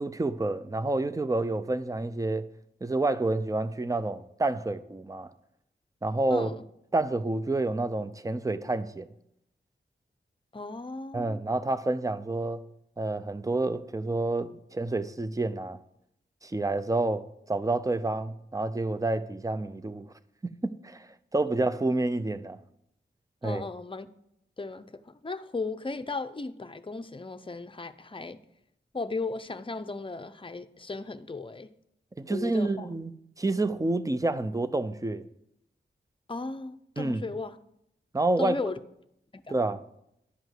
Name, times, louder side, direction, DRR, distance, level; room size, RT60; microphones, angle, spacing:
voice 1, 0.0-2.5 2.8-5.3 6.0-6.5 6.9-9.1 11.1-12.6 13.0-15.8 16.4-20.1 20.4-22.6 23.4-23.6 32.2-33.1 33.4-35.3 37.0-37.2 38.1-38.6 39.5-39.8, right 2 dB, 15° right, 0.6 m, -29 dB
voice 2, 10.5-11.4 23.4-24.1 24.6-28.4 28.9-31.7 32.3-32.9 36.3-37.6 38.4-38.8 39.3-39.5, left 3 dB, 25° left, 0.7 m, -36 dB
11.0 x 5.2 x 7.7 m
wide cardioid pair, 75°, 19 cm